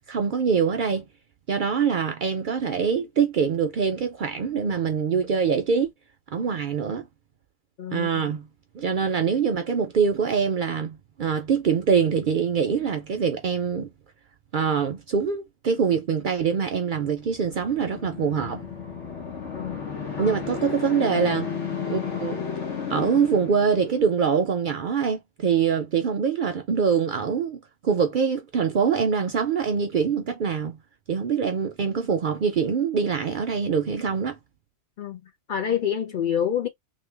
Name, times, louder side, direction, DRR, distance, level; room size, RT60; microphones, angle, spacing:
voice 1, 0.1-1.1 1.5-5.9 6.3-7.1 7.9-8.5 8.7-13.9 14.5-18.6 20.2-21.5 21.9-22.4 22.9-30.8 31.1-34.4, right 6 dB, 60° right, 0.5 m, -24 dB
voice 2, 7.8-8.3 19.5-19.8 20.2-20.3 35.0-35.2 35.5-36.7, left 8 dB, 60° left, 0.6 m, -27 dB
sound 1, 17.2-24.2, left 6 dB, 80° left, 1.3 m, -33 dB
3.1 x 2.1 x 3.2 m
omnidirectional pair, 1.2 m